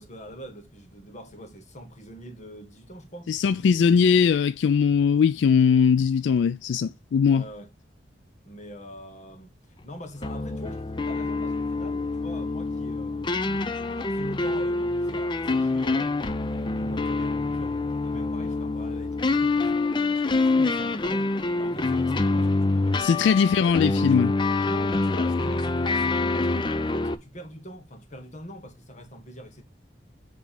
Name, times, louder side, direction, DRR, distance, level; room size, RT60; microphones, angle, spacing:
voice 1, 0.0-3.3 7.3-7.7 8.4-9.5 9.8-23.6 24.6-29.6, equal, 40° left, 1.6 m, -43 dB
voice 2, 3.3-7.4 23.0-24.3, left 6 dB, 85° left, 0.3 m, -20 dB
sound 1, 10.2-27.1, left 3 dB, 25° left, 0.5 m, -26 dB
7.2 x 3.6 x 5.8 m
head